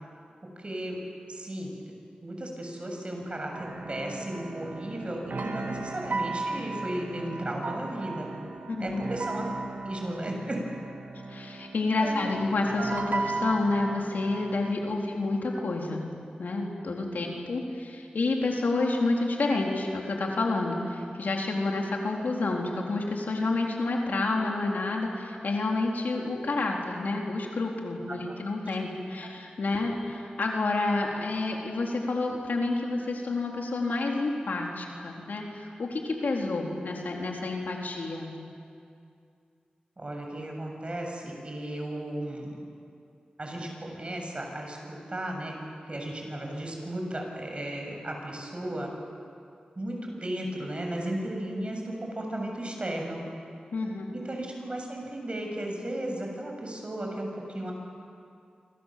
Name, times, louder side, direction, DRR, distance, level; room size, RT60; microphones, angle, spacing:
voice 1, 0.6-1.0 1.3-1.9 2.2-8.3 8.8-9.4 9.8-10.6 12.0-12.2 17.1-17.2 28.1-28.3 40.0-42.6 43.4-45.6 45.9-48.9 49.8-53.2 54.1-57.7, right 1 dB, 40° right, 1 dB, 7.2 m, -35 dB
sound 1, 3.5-14.7, right 3 dB, 85° right, 2.0 m, -36 dB
voice 2, 8.8-9.1 11.3-16.0 16.4-38.3 53.7-54.1, left 2 dB, 85° left, 0 dB, 3.9 m, -29 dB
27.5 x 25.5 x 7.7 m, 2.4 s
wide cardioid pair, 60°, 3 cm